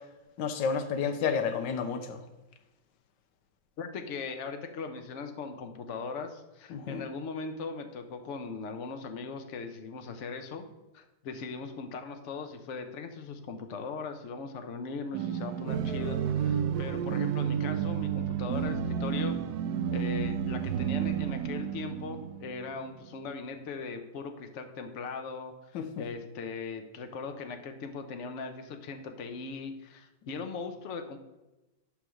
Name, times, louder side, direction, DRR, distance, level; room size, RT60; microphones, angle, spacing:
voice 1, 0.4-2.2 6.7-7.0 25.7-25.9, left 6 dB, 80° left, 6 dB, 1.4 m, -30 dB
voice 2, 3.8-10.6 10.9-19.4 19.9-31.2, left 4 dB, 55° left, 6 dB, 0.9 m, -39 dB
sound 1, 15.1-22.7, right 8 dB, 70° right, 1.0 m, -31 dB
10.0 x 3.5 x 6.3 m, 1.0 s
omnidirectional pair, 2.0 m